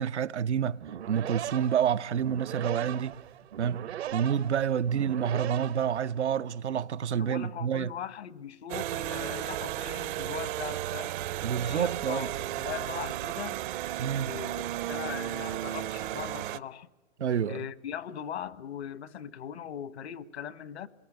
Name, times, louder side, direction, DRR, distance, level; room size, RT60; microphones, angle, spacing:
voice 1, 0.0-3.1 3.6-7.9 11.4-12.3 14.0-14.4 17.2-17.6, right 8 dB, 85° right, 0.7 m, -28 dB
sound 1, 0.7-6.5, right 11 dB, 70° right, 1.1 m, -39 dB
voice 2, 7.1-11.2 11.6-13.6 14.3-16.9 17.5-20.9, left 9 dB, 70° left, 1.3 m, -40 dB
sound 2, 8.7-16.6, right 14 dB, 50° right, 0.7 m, -34 dB
27.0 x 21.5 x 7.8 m
hypercardioid pair, 130°, 33 cm